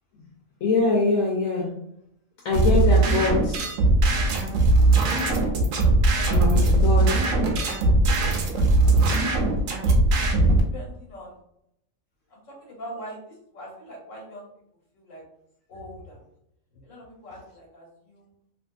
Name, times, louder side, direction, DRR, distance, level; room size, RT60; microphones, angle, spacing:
voice 1, 0.6-1.7 2.4-3.6 6.3-7.1, left 3 dB, 85° left, -4 dB, 1.1 m, -23 dB
sound 1, 2.5-10.6, right 2 dB, 75° right, 1.0 m, -20 dB
voice 2, 3.2-3.7 6.5-6.7 7.0-7.2 7.5-8.9 10.7-11.3 12.3-14.5 14.9-15.2 15.7-16.2 16.7-18.3, equal, 70° left, -2 dB, 1.4 m, -43 dB
2.7 x 2.5 x 2.3 m, 0.77 s
omnidirectional pair, 1.4 m